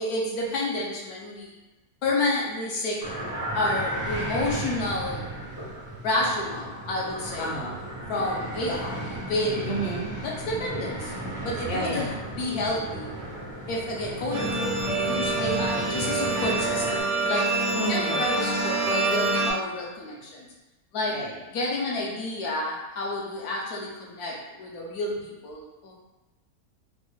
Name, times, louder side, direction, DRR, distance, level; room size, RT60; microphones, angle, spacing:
voice 1, 0.0-1.5 2.0-3.0 3.5-5.3 6.0-7.5 8.1-9.7 10.2-11.1 11.4-13.1 13.7-17.5 17.9-20.5 20.9-21.2 21.5-25.9, left 2 dB, 75° left, -3 dB, 1.1 m, -30 dB
sound 1, 3.0-17.0, right 1 dB, 30° right, 0.3 m, -35 dB
voice 2, 7.4-7.8 9.6-10.2 11.7-12.1 17.7-18.2 21.1-21.4, right 1 dB, 55° left, -3 dB, 0.8 m, -31 dB
sound 2, 14.3-19.5, right 2 dB, 75° right, 1.0 m, -26 dB
3.3 x 2.2 x 3.1 m, 1.1 s
omnidirectional pair, 1.7 m